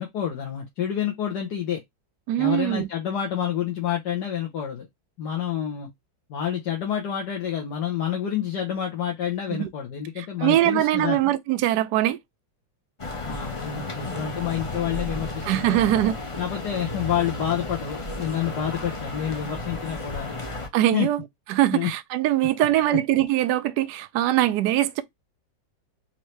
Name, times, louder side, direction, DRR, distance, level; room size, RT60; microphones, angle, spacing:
voice 1, 0.0-1.8 2.4-4.9 5.2-5.9 6.3-11.2 13.2-16.0 16.4-20.3 20.9-21.1 21.7-21.9 22.9-23.0, left 9 dB, 65° left, 1.5 m, -28 dB
voice 2, 2.3-2.9 9.5-9.7 10.2-12.2 15.4-16.2 20.7-21.2 21.5-25.0, right 13 dB, 75° right, 1.1 m, -22 dB
sound 1, 13.0-20.7, left 2 dB, 30° left, 0.6 m, -33 dB
4.4 x 2.8 x 3.1 m
omnidirectional pair, 2.0 m